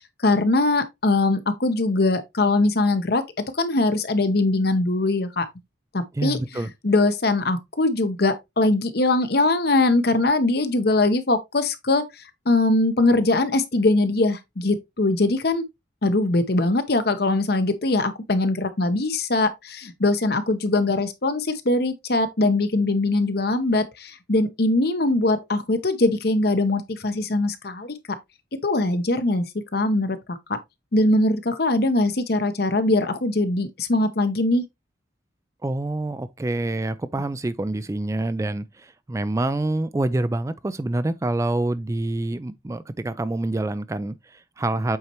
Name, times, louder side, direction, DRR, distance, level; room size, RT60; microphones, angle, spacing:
voice 1, 0.2-3.2 3.6-5.5 5.9-12.0 12.5-15.6 16.0-27.9 28.6-29.5 29.7-30.4 30.9-34.6, left 2 dB, 55° left, 0.9 m, -21 dB
voice 2, 6.1-6.7 35.6-45.0, right 2 dB, 15° right, 0.3 m, -26 dB
8.0 x 4.3 x 3.0 m
head